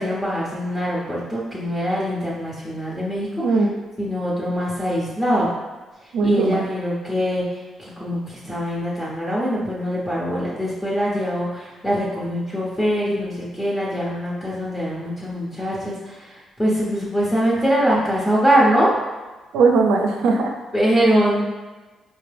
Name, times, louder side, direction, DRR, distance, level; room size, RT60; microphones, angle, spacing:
voice 1, 0.0-3.6 4.0-5.5 6.2-18.9 20.7-21.4, equal, 20° left, -7 dB, 0.9 m, -23 dB
voice 2, 6.1-6.6 19.5-20.5, right 4 dB, 85° right, 2 dB, 0.5 m, -18 dB
4.4 x 2.1 x 3.3 m, 1.2 s
cardioid pair, 85°, 0 cm